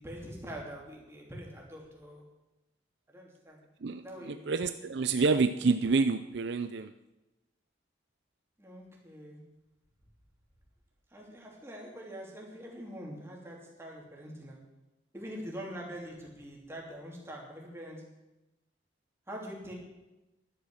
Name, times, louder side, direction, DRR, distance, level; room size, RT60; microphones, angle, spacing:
voice 1, 0.0-2.2 3.1-3.6 4.0-4.5 8.6-9.4 11.1-14.6 15.1-18.0 19.3-19.7, equal, 15° right, -2 dB, 3.2 m, -44 dB
voice 2, 3.8-6.9, right 4 dB, 60° right, 10 dB, 0.5 m, -28 dB
11.5 x 11.5 x 6.4 m, 1.0 s
head